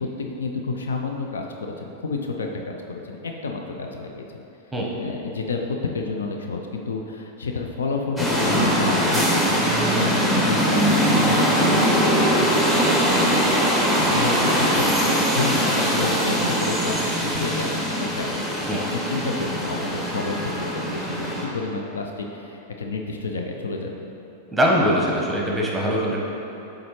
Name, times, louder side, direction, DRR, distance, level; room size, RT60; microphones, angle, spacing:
voice 1, 0.0-4.4 5.0-9.6 9.9-24.1, left 4 dB, 75° left, 2 dB, 0.5 m, -30 dB
sound 1, 8.2-21.5, equal, 10° left, 1.1 m, -21 dB
voice 2, 24.5-26.2, equal, 5° right, -2 dB, 1.0 m, -22 dB
7.8 x 3.8 x 3.1 m, 3.0 s
figure-of-eight pair, 95°, 0 cm